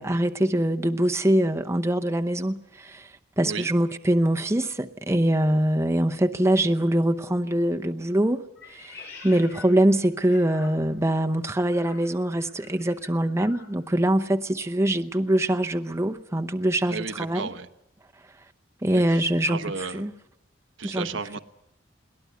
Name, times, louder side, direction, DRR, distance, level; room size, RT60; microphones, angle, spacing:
voice 1, 0.0-3.1 3.4-8.4 8.7-17.5 18.8-19.6 19.9-20.1 20.8-21.1, right 1 dB, 15° right, 0.8 m, -23 dB
Meow, 8.6-11.1 11.7-13.7, left 4 dB, 65° left, 5.0 m, -47 dB
voice 2, 16.9-17.7 18.9-20.0 20.8-21.4, right 4 dB, 85° right, 1.1 m, -33 dB
22.0 x 18.5 x 8.3 m
head